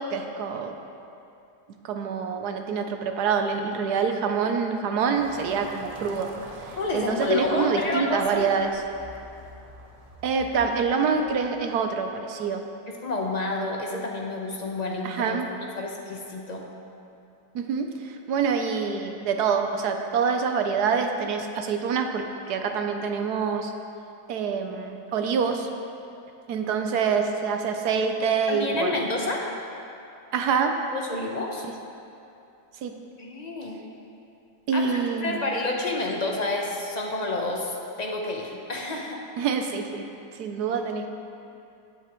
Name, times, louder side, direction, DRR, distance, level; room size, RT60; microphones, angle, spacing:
voice 1, 0.1-0.7 1.8-6.3 6.7-8.8 10.2-12.6 15.0-15.5 17.5-23.7 24.3-25.7 26.5-29.0 30.3-30.8 32.8-33.0 34.7-35.4 39.4-40.1 40.4-41.1, right 6 dB, 70° right, 5 dB, 1.2 m, -26 dB
sound 1, 5.1-12.0, right 1 dB, 50° right, 0.4 m, -45 dB
voice 2, 6.8-8.4 12.9-15.4 15.7-16.6 28.5-29.5 30.9-31.6 33.2-33.8 34.7-39.2, left 2 dB, 30° left, 0 dB, 0.8 m, -29 dB
16.0 x 8.0 x 3.1 m, 2.7 s
omnidirectional pair, 1.8 m